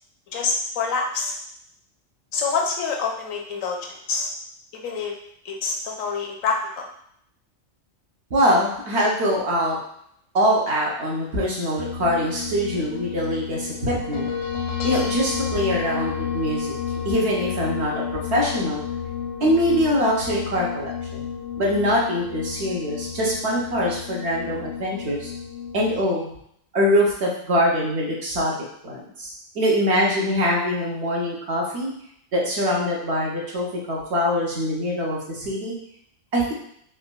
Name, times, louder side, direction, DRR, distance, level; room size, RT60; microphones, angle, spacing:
voice 1, 0.3-1.3 2.3-4.3 4.7-5.1 5.4-6.9, left 4 dB, 80° left, 0 dB, 1.0 m, -26 dB
voice 2, 8.3-9.8 10.3-14.3 14.8-16.8 17.0-18.8 19.4-21.3 21.6-25.3 25.7-26.3 26.7-28.5 28.8-31.9 32.3-35.8 36.3-36.5, equal, 60° right, -3 dB, 0.9 m, -23 dB
sound 1, 11.8-26.0, left 7 dB, 65° left, 0.7 m, -31 dB
3.8 x 2.2 x 2.2 m, 0.69 s
omnidirectional pair, 1.4 m